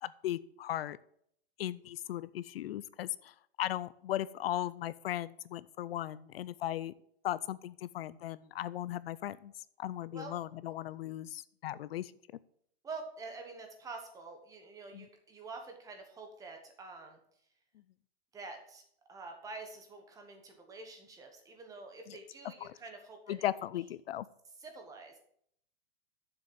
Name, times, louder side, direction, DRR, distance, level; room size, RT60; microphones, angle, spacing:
voice 1, 0.0-1.0 1.6-6.9 7.2-9.5 9.8-12.1 14.9-15.1 22.6-22.7 23.3-24.3, left 13 dB, 70° left, 17 dB, 0.5 m, -37 dB
voice 2, 12.8-17.2 18.3-18.8 19.1-23.9 24.6-25.2, right 3 dB, 10° right, 4 dB, 1.1 m, -47 dB
7.0 x 6.4 x 7.4 m, 0.67 s
hypercardioid pair, 160°, 31 cm